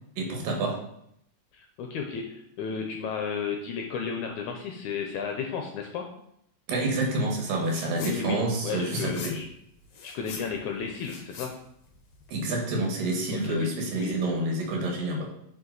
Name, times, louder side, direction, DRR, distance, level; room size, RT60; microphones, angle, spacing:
voice 1, 0.2-0.8 6.7-9.4 12.3-15.3, right 2 dB, 80° right, 1 dB, 3.3 m, -28 dB
voice 2, 1.5-6.1 7.9-9.5 10.0-11.5 13.3-13.7 14.0-14.2, left 6 dB, 75° left, 3 dB, 1.9 m, -33 dB
sound 1, 7.6-8.2 8.5-12.4, left 4 dB, 60° left, 1.6 m, -43 dB
8.6 x 5.1 x 4.0 m, 0.75 s
omnidirectional pair, 4.0 m